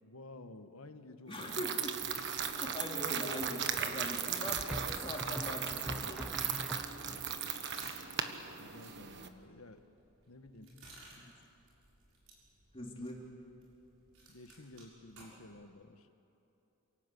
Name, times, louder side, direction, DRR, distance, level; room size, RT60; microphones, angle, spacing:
voice 1, 0.0-1.5 7.0-7.2 8.6-9.8 10.3-10.7 14.3-16.1, left 2 dB, 75° left, 8 dB, 1.4 m, -52 dB
voice 2, 1.3-2.0 2.5-6.3 10.6-10.9 12.7-13.3, left 1 dB, 25° left, -1 dB, 3.2 m, -42 dB
sound 1, 1.3-9.3, right 8 dB, 55° right, 1.4 m, -37 dB
sound 2, 1.8-4.7 5.1-15.6, right 2 dB, 75° right, 6.8 m, -57 dB
sound 3, 2.0-2.6 4.7-7.3, equal, 5° right, 0.5 m, -44 dB
28.0 x 18.0 x 8.5 m, 2.9 s
head